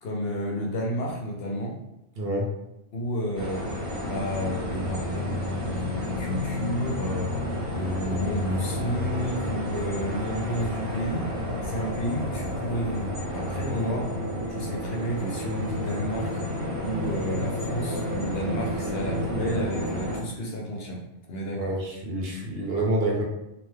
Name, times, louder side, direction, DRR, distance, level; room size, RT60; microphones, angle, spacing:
voice 1, 0.0-1.8 2.9-3.7 4.0-7.4 7.7-11.3 11.6-14.2 14.4-16.4 16.8-21.8, equal, 65° left, -1 dB, 0.8 m, -31 dB
voice 2, 2.2-2.5 21.6-23.2, right 1 dB, 60° right, -2 dB, 0.9 m, -27 dB
sound 1, 3.3-20.2, left 1 dB, 35° right, 0.6 m, -31 dB
sound 2, 13.8-19.3, left 3 dB, 80° right, 1.3 m, -39 dB
2.7 x 2.2 x 3.2 m, 0.88 s
omnidirectional pair, 1.2 m